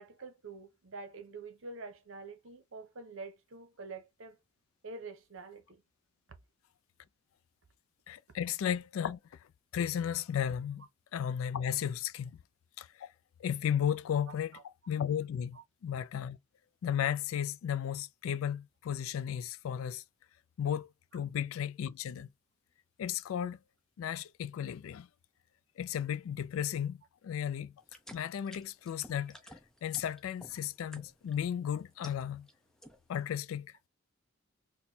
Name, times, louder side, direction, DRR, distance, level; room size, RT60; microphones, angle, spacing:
voice 1, 0.0-4.4 4.8-5.8 14.3-14.6 15.5-15.6, right 3 dB, 70° right, 0.7 m, -47 dB
voice 2, 8.1-9.2 9.7-12.4 12.8-13.1 13.4-14.6 14.9-16.4 16.8-20.0 20.6-22.3 23.0-23.6 24.0-25.1 25.8-27.7 28.1-29.4 29.8-32.5 33.1-33.9, left 9 dB, 80° left, 0.3 m, -34 dB
sound 1, 27.8-31.4 31.8-32.5 32.8-33.2, equal, 5° left, 0.4 m, -52 dB
4.3 x 2.2 x 2.6 m
head